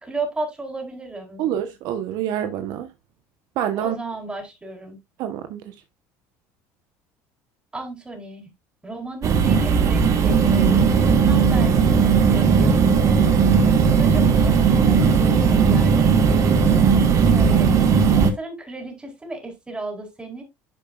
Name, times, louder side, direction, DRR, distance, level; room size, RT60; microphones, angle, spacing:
voice 1, 0.0-1.5 3.8-5.0 7.7-8.5 8.8-10.9 11.2-13.3 13.8-16.8 17.2-17.8 18.1-20.4, right 2 dB, 15° right, 4.6 m, -34 dB
voice 2, 1.4-2.9 3.6-4.0 5.2-5.7, right 10 dB, 65° right, 1.2 m, -26 dB
sound 1, 9.2-18.3, right 6 dB, 50° right, 1.8 m, -17 dB
11.0 x 7.1 x 2.5 m
supercardioid pair, 105°, 7 cm